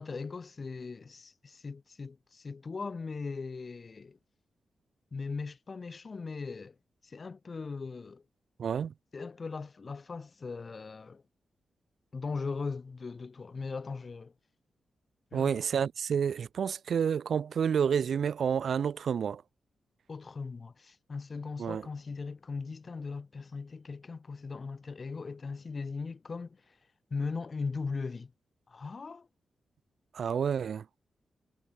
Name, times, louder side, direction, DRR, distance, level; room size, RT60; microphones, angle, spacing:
voice 1, 0.0-4.2 5.1-6.7 7.0-8.2 9.1-11.2 12.1-14.3 15.3-15.7 20.1-26.8 27.1-28.3 28.7-29.3, left 4 dB, 35° left, 1.2 m, -39 dB
voice 2, 8.6-8.9 15.3-19.4 21.6-21.9 30.1-30.9, right 7 dB, 65° right, 0.5 m, -29 dB
wide cardioid pair, 115°, 0 cm